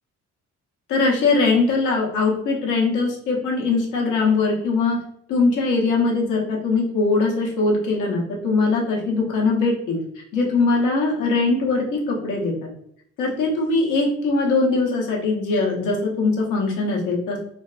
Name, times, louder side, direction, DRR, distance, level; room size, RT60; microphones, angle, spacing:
voice 1, 0.9-5.0 5.3-10.0 10.3-12.5 13.2-17.4, left 3 dB, 85° left, -2 dB, 0.8 m, -21 dB
2.5 x 2.2 x 2.4 m, 0.68 s
cardioid pair, 90°, 30 cm